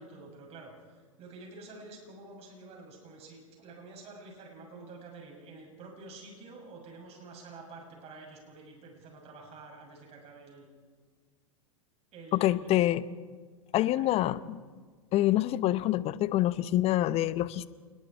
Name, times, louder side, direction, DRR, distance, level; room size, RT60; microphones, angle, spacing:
voice 1, 0.0-10.7 12.1-12.8 13.7-14.3, right 3 dB, 35° right, 2 dB, 7.4 m, -49 dB
voice 2, 12.3-13.0 13.7-14.6 15.1-17.7, left 14 dB, 35° left, 16 dB, 0.9 m, -26 dB
27.5 x 21.0 x 4.6 m, 1.5 s
hypercardioid pair, 100°, 18 cm